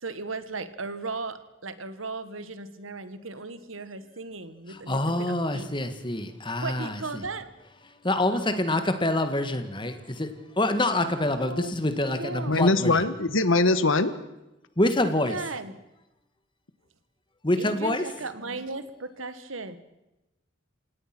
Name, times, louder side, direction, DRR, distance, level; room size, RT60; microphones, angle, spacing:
voice 1, 0.0-5.7 6.6-7.5 8.3-8.8 11.4-11.7 12.2-12.6 15.0-15.8 17.6-19.8, right 3 dB, 90° right, 13 dB, 1.7 m, -36 dB
voice 2, 4.7-7.2 8.0-13.0 14.8-15.4 17.4-18.0, left 1 dB, 25° left, 9 dB, 1.8 m, -26 dB
voice 3, 12.5-14.2, left 2 dB, 85° left, 13 dB, 1.5 m, -22 dB
28.0 x 17.5 x 6.1 m, 0.94 s
head